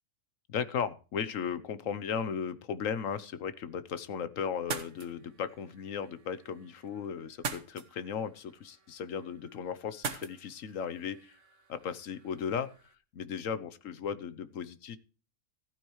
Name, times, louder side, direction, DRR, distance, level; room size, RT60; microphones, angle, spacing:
voice 1, 0.5-11.3 11.7-12.7 13.1-15.0, left 7 dB, 75° left, 14 dB, 1.3 m, -36 dB
sound 1, 4.5-12.9, right 5 dB, 65° right, 1.6 m, -44 dB
15.5 x 9.2 x 3.1 m, 0.35 s
omnidirectional pair, 1.4 m